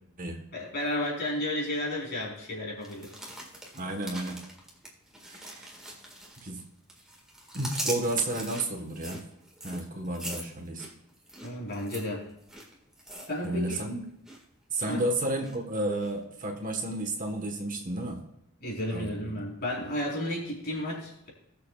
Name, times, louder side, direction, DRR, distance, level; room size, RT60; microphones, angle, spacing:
voice 1, 0.5-3.1 11.4-12.3 13.3-13.8 14.9-15.0 18.6-21.3, left 1 dB, 45° left, -4 dB, 4.1 m, -32 dB
sound 1, 2.8-6.6 6.9-13.8 14.1-14.4 14.9-15.6 16.0-16.1, right 1 dB, 5° right, 1.7 m, -41 dB
voice 2, 3.7-4.4 5.2-5.7 6.4-6.6 7.5-9.2 9.6-10.9 13.4-14.0 14.7-18.2 18.9-19.3, right 1 dB, 35° right, 4 dB, 1.2 m, -32 dB
20.0 x 6.8 x 2.4 m, 0.82 s
head